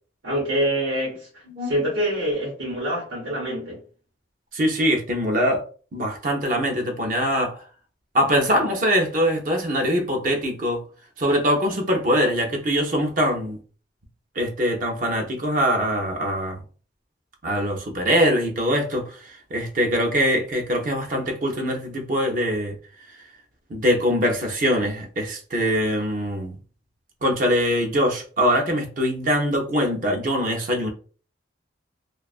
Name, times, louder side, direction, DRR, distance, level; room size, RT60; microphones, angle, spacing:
voice 1, 0.2-3.8, right 1 dB, 90° right, 0.9 m, -26 dB
voice 2, 4.5-5.6 5.9-7.6 8.1-10.8 11.2-13.6 14.4-16.6 17.4-22.7 23.7-26.5 27.2-30.9, equal, 45° right, 0.5 m, -23 dB
2.5 x 2.3 x 2.3 m
head